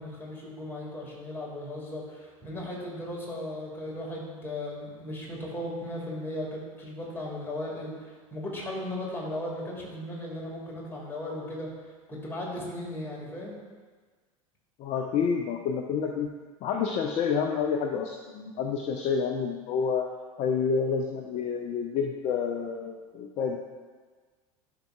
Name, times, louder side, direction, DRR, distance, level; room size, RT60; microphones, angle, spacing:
voice 1, 0.0-11.7 12.1-13.5, left 1 dB, 10° left, -4 dB, 2.1 m, -36 dB
voice 2, 14.8-16.3 16.6-20.0 20.4-23.6, left 6 dB, 35° left, 2 dB, 0.6 m, -29 dB
11.5 x 5.6 x 2.4 m, 1.5 s
figure-of-eight pair, 75°, 19 cm